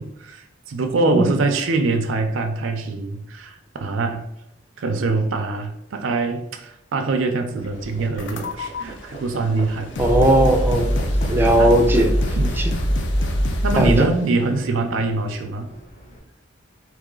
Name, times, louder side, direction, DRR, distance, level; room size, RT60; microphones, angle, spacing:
voice 1, 0.0-4.3 4.8-10.0 11.0-11.8 12.3-12.6 13.6-15.7, right 3 dB, 85° right, 5 dB, 0.5 m, -24 dB
Livestock farm animals working animals, 7.5-16.2, right 1 dB, 35° left, 0.9 m, -38 dB
sound 1, 8.2-8.8 9.6-9.7 9.9-14.2, equal, 65° left, 0.5 m, -22 dB
voice 2, 10.0-11.0 11.3-12.1 12.6-12.7 13.8-13.9, right 1 dB, 10° right, 3 dB, 0.4 m, -17 dB
4.0 x 3.0 x 3.7 m, 0.79 s
head